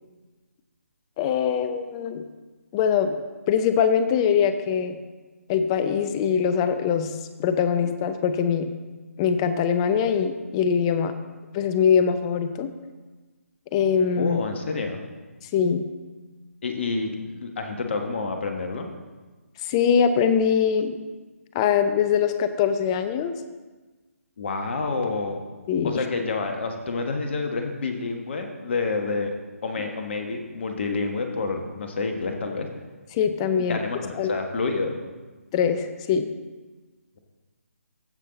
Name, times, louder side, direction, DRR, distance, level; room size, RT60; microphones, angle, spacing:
voice 1, 1.2-2.2 2.7-3.2 3.5-5.0 5.5-7.1 7.4-8.7 9.2-11.1 11.5-12.7 13.7-14.4 15.5-15.8 19.6-21.0 21.5-23.3 25.7-26.0 33.1-33.8 34.2-34.3 35.5-36.3, left 7 dB, 20° left, 10 dB, 0.5 m, -22 dB
voice 2, 14.2-15.0 16.6-18.9 24.4-25.4 25.8-29.3 29.6-32.7 33.7-35.0, left 4 dB, 50° left, 4 dB, 1.4 m, -28 dB
15.0 x 5.5 x 4.0 m, 1.3 s
figure-of-eight pair, 145°, 8 cm